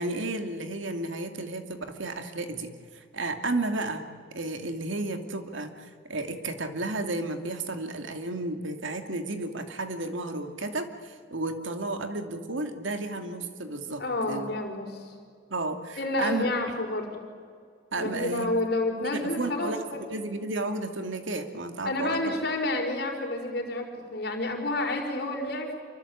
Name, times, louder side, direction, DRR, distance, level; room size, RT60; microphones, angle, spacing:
voice 1, 0.0-14.5 15.5-16.5 17.9-18.4 19.0-22.2, right 2 dB, 75° right, 7 dB, 2.5 m, -33 dB
voice 2, 14.0-15.1 16.0-17.2 18.0-20.0 21.8-25.8, left 2 dB, 55° left, 3 dB, 4.8 m, -29 dB
27.5 x 24.5 x 8.6 m, 2.2 s
head